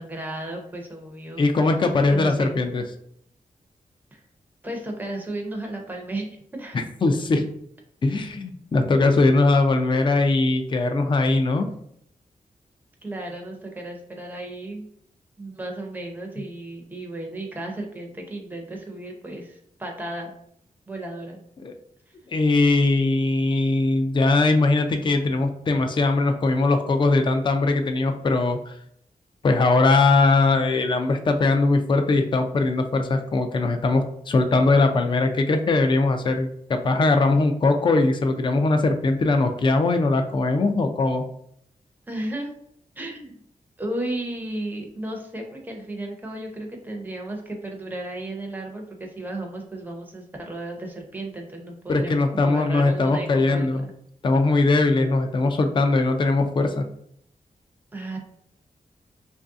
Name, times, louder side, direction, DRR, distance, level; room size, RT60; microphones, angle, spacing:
voice 1, 0.0-1.4 2.1-2.5 4.1-4.2 4.6-6.8 13.0-14.9 15.4-20.3 20.9-21.4 42.1-42.5 43.0-43.4 43.8-53.9 57.9-58.2, right 1 dB, 10° right, 1 dB, 0.6 m, -34 dB
voice 2, 1.4-2.8 6.7-7.4 8.0-11.7 21.6-21.7 22.3-28.7 29.4-41.2 51.9-53.8 54.2-56.8, left 3 dB, 35° left, 6 dB, 0.4 m, -20 dB
3.1 x 2.6 x 3.5 m, 0.69 s
wide cardioid pair, 165°, 15 cm